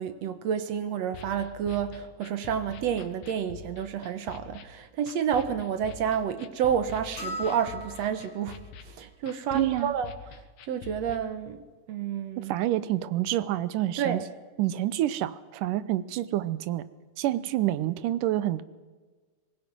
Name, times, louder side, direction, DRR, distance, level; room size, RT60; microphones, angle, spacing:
voice 1, 0.0-12.5 14.0-14.3, right 8 dB, 65° right, 1.9 m, -30 dB
sound 1, 1.1-11.2, left 6 dB, 80° left, 2.9 m, -46 dB
sound 2, 7.2-8.5, left 2 dB, 55° left, 7.7 m, -38 dB
voice 2, 9.5-9.9 12.4-14.2 14.6-16.9 17.2-18.6, right 14 dB, 80° right, 2.4 m, -27 dB
26.0 x 19.5 x 6.1 m
omnidirectional pair, 3.7 m